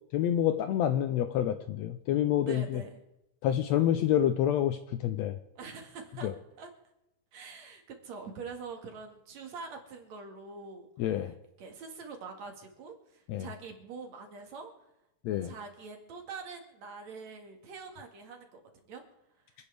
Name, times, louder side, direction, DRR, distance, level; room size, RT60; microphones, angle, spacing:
voice 1, 0.1-2.8 3.4-5.4 6.2-6.3 11.0-11.3 13.3-13.5 15.2-15.5, left 11 dB, 80° left, 9 dB, 1.7 m, -28 dB
voice 2, 2.4-3.0 5.6-6.3 6.6-6.7 7.3-10.9 11.1-11.3 11.6-14.7 15.4-18.6 18.9-19.0, right 4 dB, 60° right, 3 dB, 3.0 m, -44 dB
28.0 x 9.8 x 3.4 m, 0.88 s
omnidirectional pair, 3.6 m